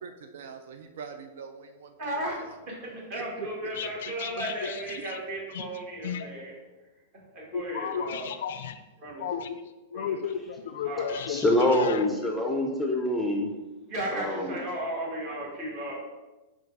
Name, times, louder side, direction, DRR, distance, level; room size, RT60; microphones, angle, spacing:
voice 1, 0.0-2.5 3.1-3.5 3.8-4.1 5.0-5.1, right 6 dB, 75° right, 7 dB, 0.3 m, -43 dB
voice 2, 2.0-6.5 7.1-8.3 9.0-9.2 9.9-10.2 10.8-11.2 13.9-15.9, right 1 dB, 40° right, -3 dB, 1.4 m, -35 dB
voice 3, 3.7-5.2 5.5-5.7 6.0-6.3 7.5-8.8 9.2-12.1, left 7 dB, 75° left, 10 dB, 0.3 m, -34 dB
voice 4, 11.3-13.5 14.1-14.6, left 1 dB, 5° left, 0 dB, 0.4 m, -25 dB
3.8 x 2.3 x 4.5 m, 1.1 s
supercardioid pair, 145°, 0 cm